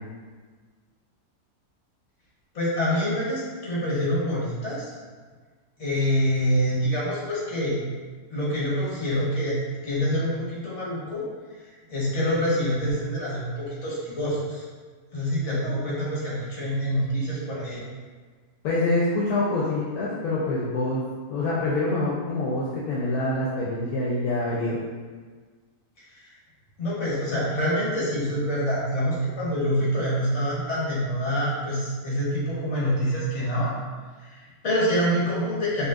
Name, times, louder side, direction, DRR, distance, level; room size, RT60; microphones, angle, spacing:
voice 1, 2.5-4.9 5.8-7.8 8.3-11.2 11.9-14.6 15.1-17.8 26.1-26.3 26.8-33.7 34.2-35.9, equal, 55° left, -7 dB, 1.7 m, -26 dB
voice 2, 18.6-21.0 21.3-24.8, left 2 dB, 80° left, -6 dB, 1.1 m, -25 dB
5.2 x 2.8 x 2.4 m, 1.5 s
omnidirectional pair, 1.5 m